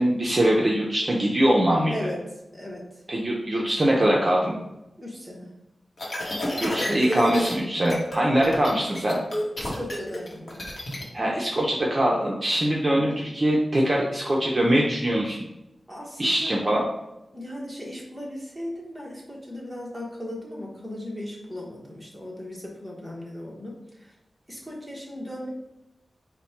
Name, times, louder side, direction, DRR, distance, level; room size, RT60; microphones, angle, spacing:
voice 1, 0.0-1.9 3.1-4.6 6.6-9.2 11.1-15.4 16.2-16.9, right 1 dB, 35° right, -3 dB, 0.5 m, -22 dB
voice 2, 5.0-5.5 9.6-10.6 12.9-13.2 15.9-16.5 17.3-24.1 24.5-25.5, left 1 dB, 5° right, -4 dB, 1.1 m, -37 dB
sound 1, 6.0-7.5 7.9-8.2 8.4-11.0, left 1 dB, 50° left, 0.9 m, -29 dB
4.1 x 2.1 x 4.4 m, 0.91 s
wide cardioid pair, 110°, 0 cm